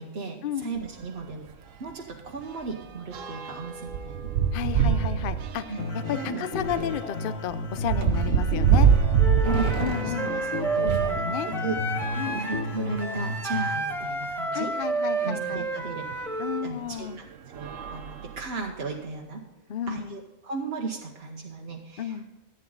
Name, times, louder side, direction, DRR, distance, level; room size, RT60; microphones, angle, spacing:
voice 1, 0.0-1.5 1.8-4.3 5.7-5.9 6.2-6.5 9.4-9.8 10.0-11.0 11.5-11.8 12.3-14.7 15.2-16.1 16.6-19.4 19.9-22.2, right 4 dB, 55° right, 0 dB, 1.2 m, -35 dB
sound 1, 0.8-0.9 1.3-1.5 1.8-11.2 12.0-13.3 14.0-14.1 14.3-14.4 16.1-16.2 16.9-17.2 17.5-18.8, right 7 dB, 85° right, 1.2 m, -26 dB
voice 2, 4.5-8.9 9.8-10.4 10.8-11.5 12.1-12.4 14.5-15.6 16.4-17.2 19.7-20.2 22.0-22.2, left 9 dB, 55° left, 12 dB, 0.7 m, -32 dB
sound 2, 5.8-13.8, left 2 dB, 70° left, 1.5 m, -33 dB
Wind instrument woodwind instrument, 9.2-16.7, right 2 dB, ahead, 1.1 m, -30 dB
14.5 x 9.0 x 4.0 m, 1.2 s
omnidirectional pair, 1.3 m